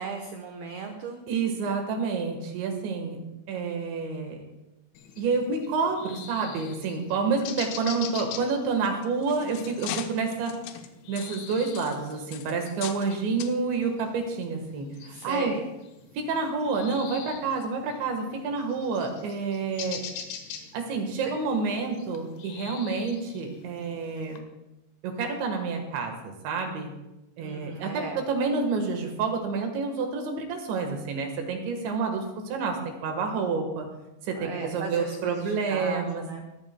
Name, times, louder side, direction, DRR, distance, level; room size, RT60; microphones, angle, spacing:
voice 1, 0.0-1.2 15.1-15.6 21.3-21.4 27.4-28.2 34.4-36.4, right 5 dB, 90° right, 4 dB, 2.2 m, -36 dB
voice 2, 1.3-3.2 3.5-4.4 5.2-10.6 11.1-15.6 16.1-20.0 20.7-24.4 25.0-26.9 27.4-33.9 34.2-36.2, right 4 dB, 70° right, 4 dB, 3.4 m, -29 dB
sound 1, 4.9-24.4, left 8 dB, 70° left, 3.4 m, -44 dB
sound 2, 9.0-13.1 13.4-13.6 14.3-14.4 14.9-15.0, left 11 dB, 90° left, 3.7 m, -40 dB
25.0 x 13.5 x 2.2 m, 0.96 s
omnidirectional pair, 6.0 m